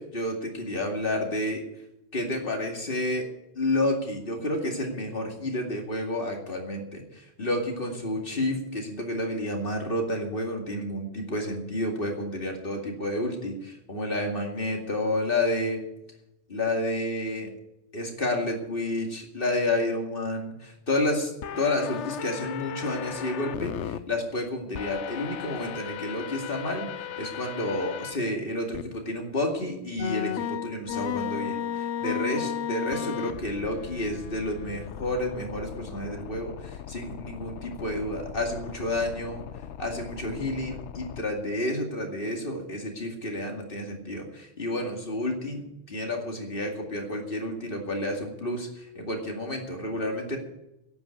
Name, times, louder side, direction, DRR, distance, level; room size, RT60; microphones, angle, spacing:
voice 1, 0.0-1.7 2.1-3.3 3.5-15.8 16.5-17.5 17.9-26.9 27.2-39.4 39.8-50.4, left 1 dB, 50° left, 2 dB, 2.5 m, -30 dB
sound 1, 21.4-24.0 24.7-28.2 28.7-28.8 30.0-41.2, left 9 dB, 70° left, 0.9 m, -35 dB
11.5 x 8.9 x 9.5 m, 0.89 s
omnidirectional pair, 1.2 m